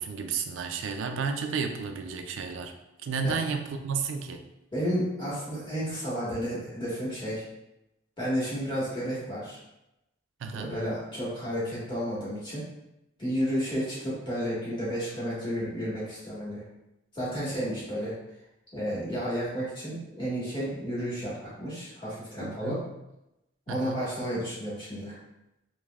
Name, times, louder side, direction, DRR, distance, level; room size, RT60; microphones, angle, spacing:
voice 1, 0.0-2.7 3.0-4.4 10.4-10.8 22.4-22.9 23.7-24.1, right 5 dB, 65° right, 5 dB, 0.3 m, -32 dB
voice 2, 4.7-7.4 8.2-9.6 10.6-12.6 13.2-16.6 17.1-18.1 18.7-22.8 23.7-25.1, equal, 25° left, -10 dB, 1.4 m, -32 dB
3.2 x 2.9 x 2.3 m, 0.92 s
head